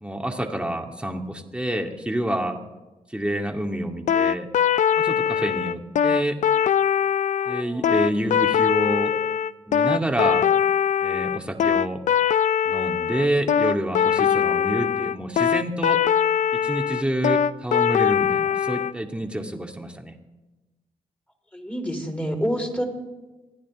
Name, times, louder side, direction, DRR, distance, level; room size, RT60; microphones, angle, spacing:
voice 1, 0.0-2.6 3.1-4.5 5.0-6.4 7.5-9.1 9.7-10.4 11.0-12.0 12.6-16.0 16.6-20.1, right 1 dB, 10° right, 3 dB, 2.2 m, -28 dB
sound 1, 4.1-18.9, left 8 dB, 65° left, 0.4 m, -21 dB
voice 2, 7.4-8.4 21.5-22.8, equal, 10° left, 0 dB, 4.5 m, -29 dB
28.5 x 10.0 x 3.7 m, 1.1 s
supercardioid pair, 55°, 13 cm